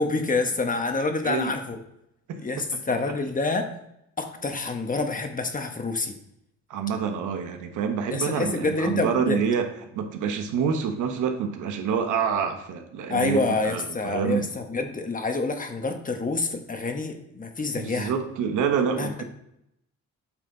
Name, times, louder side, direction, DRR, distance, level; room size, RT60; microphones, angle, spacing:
voice 1, 0.0-1.8 2.4-3.7 4.2-6.1 8.1-9.4 13.1-18.1 18.9-19.1, left 3 dB, 25° left, 5 dB, 1.2 m, -27 dB
voice 2, 6.7-9.6 9.9-14.4 17.7-19.2, right 6 dB, 85° right, 5 dB, 1.1 m, -27 dB
8.6 x 4.4 x 3.9 m, 0.80 s
cardioid pair, 90°, 30 cm